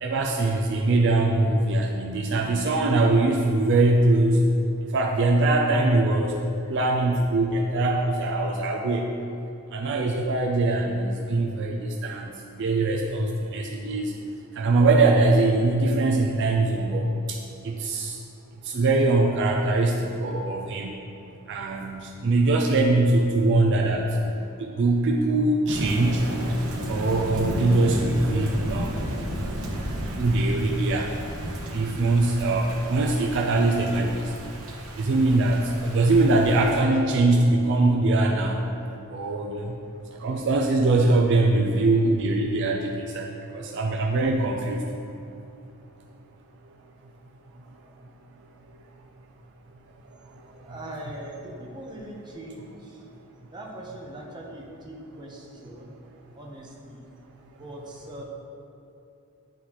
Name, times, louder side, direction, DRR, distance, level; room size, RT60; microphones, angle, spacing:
voice 1, 0.0-4.4 4.9-6.3 6.7-9.1 9.7-14.1 14.6-17.4 17.6-18.2 18.6-21.0 21.5-24.2 24.6-26.3 26.9-29.0 30.2-31.1 31.7-34.3 35.0-38.6 39.1-39.7 40.2-43.2 43.5-44.8, right 2 dB, 55° right, 0 dB, 0.4 m, -22 dB
Thunder / Rain, 25.7-36.8, equal, 70° right, 1.0 m, -33 dB
voice 2, 50.6-53.0 53.5-55.9 56.3-57.1 57.6-58.2, right 1 dB, 20° right, -3 dB, 0.8 m, -41 dB
9.6 x 3.9 x 2.9 m, 2.8 s
head